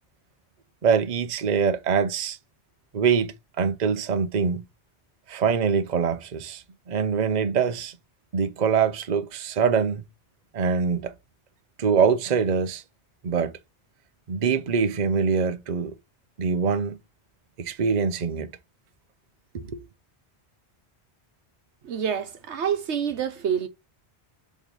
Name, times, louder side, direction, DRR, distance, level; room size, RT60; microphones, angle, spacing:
voice 1, 0.8-2.4 2.9-4.6 5.3-8.0 8.3-10.0 10.5-11.1 11.8-12.8 13.2-13.5 14.3-15.9 16.4-17.0 17.6-18.5 19.5-19.8, right 6 dB, 45° right, 0.8 m, -24 dB
voice 2, 21.8-23.7, right 8 dB, 80° right, 1.2 m, -27 dB
6.5 x 3.1 x 5.2 m
omnidirectional pair, 1.1 m